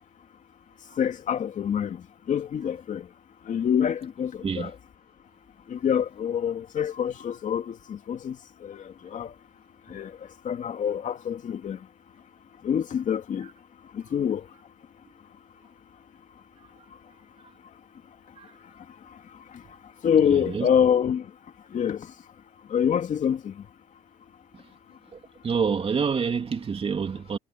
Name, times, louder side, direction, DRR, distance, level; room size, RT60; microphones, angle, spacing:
voice 1, 1.0-3.1 3.5-4.7 5.7-8.4 8.6-9.3 9.9-10.1 10.4-11.8 12.6-13.5 13.9-14.4 20.0-21.3 21.7-22.1 22.7-23.5, left 8 dB, 50° left, 2.4 m, -26 dB
voice 2, 20.2-20.7 25.4-27.4, right 6 dB, 35° right, 3.2 m, -27 dB
cardioid pair, 110°, 17 cm